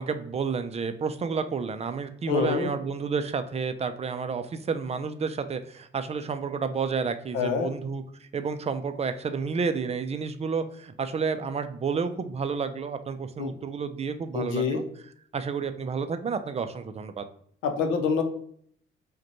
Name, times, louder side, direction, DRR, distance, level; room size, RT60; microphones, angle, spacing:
voice 1, 0.0-8.0 8.3-14.8 15.3-17.2, right 5 dB, 30° right, 9 dB, 0.4 m, -30 dB
voice 2, 2.3-2.7 7.3-7.7 13.4-13.5 14.3-14.8 17.6-18.2, left 5 dB, 90° left, 6 dB, 0.6 m, -26 dB
4.9 x 2.2 x 3.0 m, 0.63 s
cardioid pair, 90°, 20 cm